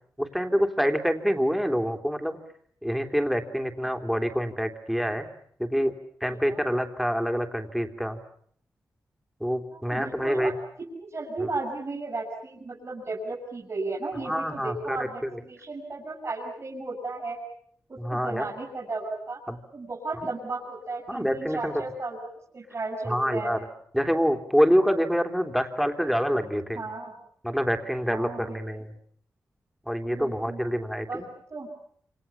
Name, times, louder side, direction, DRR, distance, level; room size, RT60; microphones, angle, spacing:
voice 1, 0.2-2.4 2.8-5.3 5.6-5.9 6.2-8.2 9.4-10.5 11.4-11.5 14.2-15.4 18.0-18.5 19.5-19.6 21.1-21.7 23.0-23.7 23.9-26.8 27.4-28.9 29.9-31.3, equal, ahead, 5 dB, 3.4 m, -26 dB
voice 2, 6.3-6.6 9.7-10.5 11.0-17.4 17.9-19.4 19.7-22.2 22.5-23.5 26.8-27.2 28.1-28.6 30.1-30.6 31.1-31.2 31.5-31.7, right 3 dB, 45° right, -1 dB, 7.3 m, -34 dB
28.5 x 28.0 x 7.2 m, 0.65 s
wide cardioid pair, 90°, 6 cm